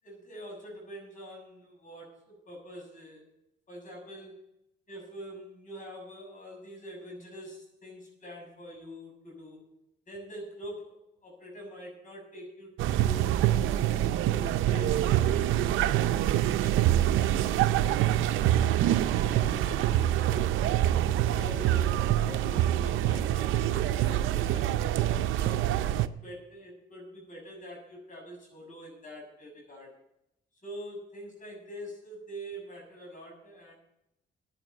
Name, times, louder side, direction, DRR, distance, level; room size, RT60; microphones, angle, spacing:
voice 1, 0.0-3.3 3.7-4.4 4.9-9.7 10.1-13.7 14.4-17.6 18.3-18.8 19.1-20.6 21.2-25.7 26.0-29.9 30.6-33.7, equal, 40° left, 1 dB, 7.1 m, -45 dB
sound 1, 12.8-26.1, right 12 dB, 85° right, 0.6 m, -25 dB
10.5 x 9.8 x 8.3 m, 0.84 s
cardioid pair, 90°, 20 cm